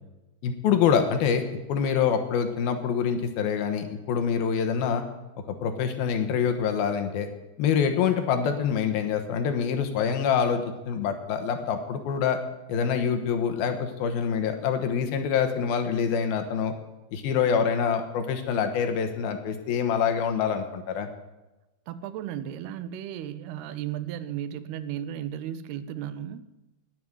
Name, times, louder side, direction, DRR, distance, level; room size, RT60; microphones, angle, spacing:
voice 1, 0.4-1.4 1.7-5.0 5.5-7.3 7.6-12.4 12.7-16.7 17.1-21.1, left 7 dB, 75° left, 6 dB, 3.0 m, -25 dB
voice 2, 21.9-26.5, right 10 dB, 85° right, 14 dB, 2.7 m, -35 dB
19.0 x 7.5 x 8.0 m, 1.1 s
omnidirectional pair, 4.6 m